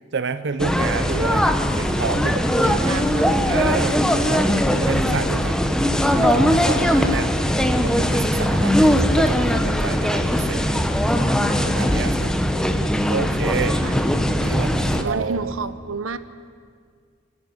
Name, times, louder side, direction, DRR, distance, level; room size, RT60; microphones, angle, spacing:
voice 1, 0.1-3.0 3.4-4.5 4.7-5.6 6.2-7.3 7.8-10.8 11.6-12.3 13.1-13.8 14.4-15.5, right 5 dB, 60° right, 11 dB, 0.6 m, -29 dB
sound 1, 0.6-15.0, equal, 5° left, 1.0 m, -20 dB
voice 2, 2.6-3.4 7.0-7.2 13.8-14.0 14.9-16.2, right 4 dB, 85° right, 13 dB, 0.9 m, -30 dB
27.0 x 11.0 x 9.5 m, 2.1 s
head